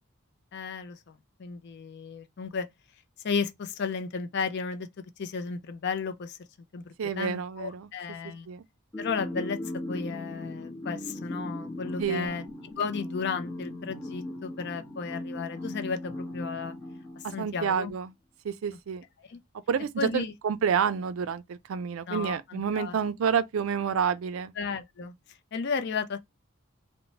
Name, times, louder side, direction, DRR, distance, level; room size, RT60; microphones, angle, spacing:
voice 1, 0.5-2.7 3.2-4.9 5.2-6.4 6.7-8.5 9.0-12.4 12.8-16.7 17.2-17.9 19.2-19.4 20.0-20.3 22.1-23.0 24.6-25.1 25.5-26.2, left 5 dB, 50° left, 0.4 m, -34 dB
voice 2, 7.0-7.9 8.5-8.6 12.0-12.4 17.2-18.1 18.4-19.0 19.7-24.5, right 7 dB, 70° right, 0.3 m, -29 dB
sound 1, 8.9-17.7, left 1 dB, 15° left, 1.0 m, -38 dB
2.9 x 2.1 x 2.8 m
head